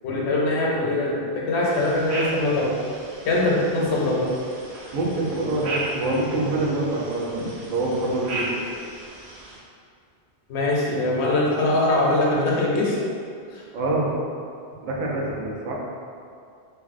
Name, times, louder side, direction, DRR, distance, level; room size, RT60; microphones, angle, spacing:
voice 1, 0.0-2.7 3.2-4.3 10.5-13.0 13.5-13.6, left 2 dB, 90° left, -3 dB, 0.9 m, -22 dB
sound 1, 1.6-9.6, right 2 dB, 80° right, 0.9 m, -36 dB
voice 2, 4.9-8.6 13.7-14.1 14.8-15.7, right 2 dB, 55° right, -3 dB, 0.6 m, -25 dB
3.0 x 2.5 x 2.5 m, 2.3 s
omnidirectional pair, 1.1 m